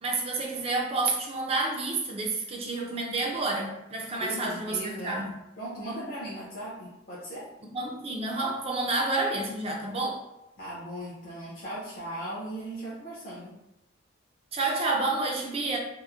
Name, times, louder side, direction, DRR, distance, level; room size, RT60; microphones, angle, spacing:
voice 1, 0.0-5.3 7.7-10.2 14.5-15.8, right 2 dB, 30° right, -1 dB, 0.4 m, -29 dB
voice 2, 4.2-5.3 5.6-7.5 10.6-13.5, right 1 dB, 50° left, -8 dB, 0.5 m, -38 dB
2.9 x 2.0 x 2.3 m, 0.91 s
head